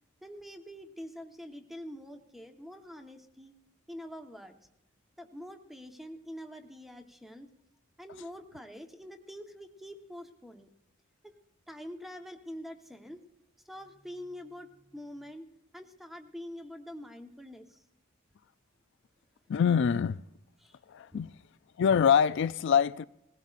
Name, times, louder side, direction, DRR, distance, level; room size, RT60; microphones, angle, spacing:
voice 1, 0.2-3.5 3.9-4.6 5.2-7.5 8.0-10.7 11.2-11.3 11.7-13.2 13.6-15.5 15.7-17.8 20.6-20.8 21.1-21.2, equal, ahead, 1.1 m, -45 dB
voice 2, 19.5-20.2 20.9-21.3 21.8-23.0, left 7 dB, 60° left, 0.4 m, -24 dB
20.0 x 16.5 x 2.5 m
head